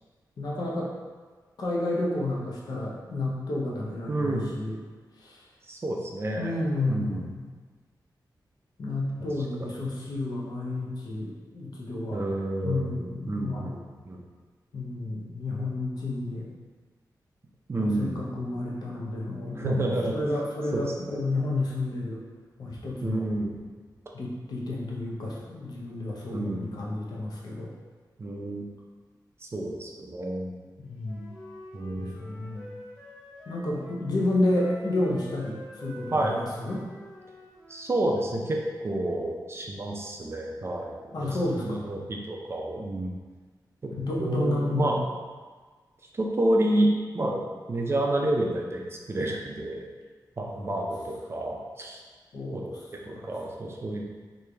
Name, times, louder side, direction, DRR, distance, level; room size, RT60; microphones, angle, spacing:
voice 1, 0.4-0.9 1.6-4.8 5.2-5.4 6.4-7.4 8.8-12.2 12.6-14.0 14.7-16.5 17.8-19.8 20.1-22.2 22.6-23.3 24.1-27.7 30.8-31.4 32.0-32.7 33.5-36.8 41.1-41.9 44.0-45.0 50.4-50.8 52.3-52.7 53.1-53.3, left 2 dB, 60° left, -3 dB, 0.7 m, -31 dB
voice 2, 4.1-4.5 5.7-6.5 6.9-7.3 9.6-9.7 12.1-12.9 13.3-14.2 17.7-18.3 19.6-20.2 20.7-21.2 23.0-23.6 26.3-26.8 28.2-28.6 29.4-30.6 31.7-32.1 36.1-36.4 37.7-41.3 41.6-43.2 43.8-43.9 44.2-45.0 46.1-47.4 47.7-48.8 49.1-49.8 50.4-52.0 52.5-52.7 53.1-54.1, right 1 dB, 35° right, -1 dB, 0.4 m, -29 dB
Wind instrument woodwind instrument, 31.0-34.0 34.5-38.0, equal, 5° right, 1.1 m, -47 dB
3.2 x 2.6 x 3.3 m, 1.4 s
wide cardioid pair, 135°, 8 cm